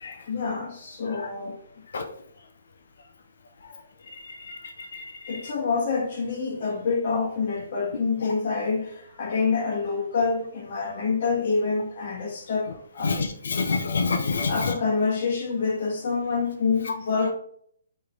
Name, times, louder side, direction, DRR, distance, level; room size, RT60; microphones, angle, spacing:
voice 1, 0.3-1.6 5.3-13.2 14.5-17.3, left 4 dB, 40° left, 1.4 m, -27 dB
voice 2, 4.5-5.4 13.0-14.7, left 4 dB, 70° left, 0.6 m, -28 dB
3.2 x 3.1 x 3.8 m
hypercardioid pair, 170°, 0 cm